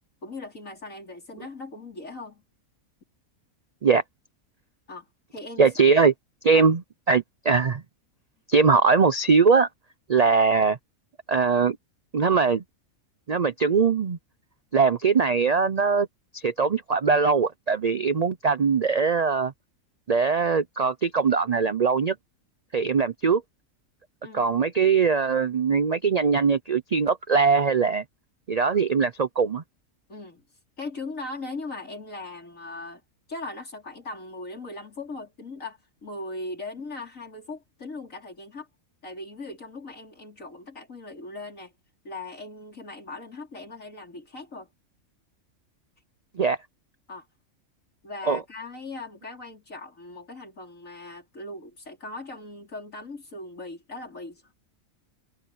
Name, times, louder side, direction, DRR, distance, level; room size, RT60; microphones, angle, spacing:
voice 1, 0.2-2.4 4.9-5.1 5.3-5.7 6.5-6.7 24.2-24.5 30.1-30.4 30.8-33.0 33.3-38.7 39.0-41.7 42.0-44.7 47.1-47.3 48.0-54.5, left 2 dB, 65° left, 4.9 m, -39 dB
voice 2, 5.6-6.1 6.4-6.8 7.1-7.8 8.5-9.7 10.1-10.8 11.3-11.8 12.1-12.6 13.3-14.2 14.7-16.1 16.3-19.5 20.1-22.1 22.7-23.4 24.3-28.0 28.5-29.6 46.4-46.6 48.3-48.4, right 5 dB, 55° right, 0.4 m, -21 dB
omnidirectional pair, 1.5 m